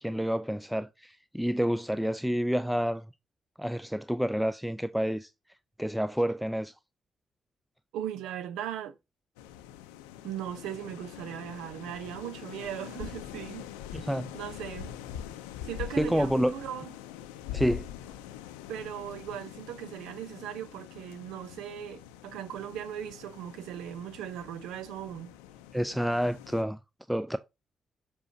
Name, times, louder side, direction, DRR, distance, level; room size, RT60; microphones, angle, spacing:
voice 1, 0.0-3.0 3.6-5.3 5.8-6.7 13.9-14.3 16.0-16.5 17.5-17.9 25.7-26.8 27.1-27.4, equal, 5° right, 0.5 m, -28 dB
voice 2, 7.9-8.9 10.2-14.9 15.6-16.9 18.7-25.3, right 10 dB, 80° right, 0.7 m, -38 dB
sound 1, 9.4-26.6, left 10 dB, 90° left, 0.5 m, -44 dB
7.0 x 5.1 x 2.8 m
hypercardioid pair, 40°, 0 cm